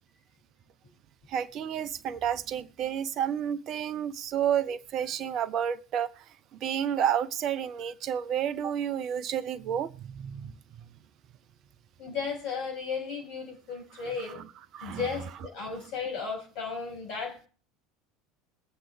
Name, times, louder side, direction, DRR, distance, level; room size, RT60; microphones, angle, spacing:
voice 1, 1.3-6.2 6.5-10.5 14.7-15.1, right 9 dB, 45° right, 0.8 m, -30 dB
voice 2, 12.0-14.4 14.8-17.5, left 5 dB, 50° left, 4.9 m, -35 dB
22.5 x 7.6 x 3.4 m
figure-of-eight pair, 70°, 0 cm